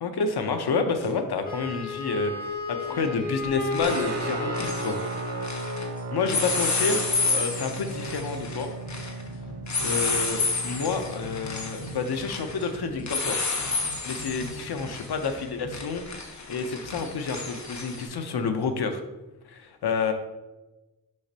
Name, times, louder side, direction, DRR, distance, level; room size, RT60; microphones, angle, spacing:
voice 1, 0.0-5.0 5.9-7.0 7.3-8.7 9.8-13.4 13.8-19.0 19.5-20.1, left 5 dB, 90° left, 7 dB, 0.7 m, -29 dB
sound 1, 1.0-1.1 2.9-3.2 3.4-5.9 6.2-18.1, left 3 dB, 50° left, 1.0 m, -31 dB
Wind instrument woodwind instrument, 1.4-5.9, left 3 dB, 20° left, 2.2 m, -34 dB
Guitar, 3.8-12.9, right 3 dB, 40° right, 0.8 m, -36 dB
6.4 x 5.9 x 2.8 m, 1.1 s
wide cardioid pair, 80°, 38 cm